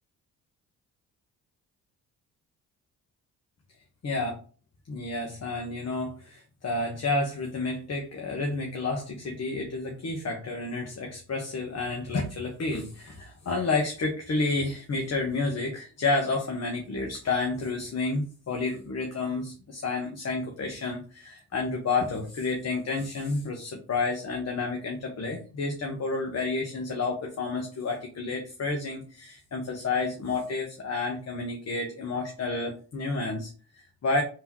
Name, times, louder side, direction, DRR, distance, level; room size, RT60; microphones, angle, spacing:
voice 1, 4.0-4.4 4.9-34.2, left 3 dB, 40° left, 2 dB, 1.0 m, -30 dB
3.5 x 2.9 x 4.4 m, 0.39 s
hypercardioid pair, 50°, 41 cm